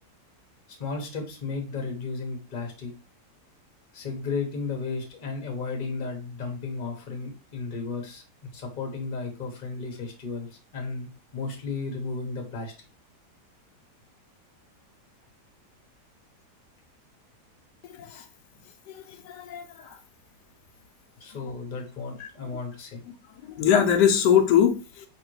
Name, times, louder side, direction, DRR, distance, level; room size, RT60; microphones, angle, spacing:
voice 1, 0.8-2.9 3.9-8.2 8.5-12.7 21.2-23.0, left 4 dB, 35° left, 1.0 m, -34 dB
voice 2, 17.9-18.2 18.9-20.0 21.4-21.5 22.2-22.3 23.4-25.1, left 8 dB, 85° left, 1.2 m, -23 dB
4.1 x 3.0 x 3.0 m
omnidirectional pair, 1.8 m